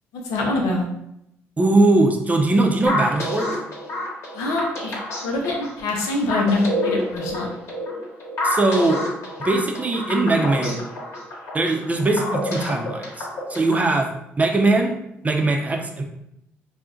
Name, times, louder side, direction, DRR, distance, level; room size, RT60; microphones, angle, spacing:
voice 1, 0.2-0.9 4.3-4.9 5.2-7.5, left 2 dB, 85° left, 0 dB, 0.5 m, -24 dB
voice 2, 1.6-3.5 8.4-9.0 9.4-10.8 11.5-14.1 14.4-14.9 15.2-16.0, right 2 dB, 25° right, 2 dB, 0.5 m, -20 dB
sound 1, 2.9-13.9, left 1 dB, 60° left, 1.0 m, -28 dB
2.5 x 2.1 x 3.6 m, 0.79 s
supercardioid pair, 65°, 5 cm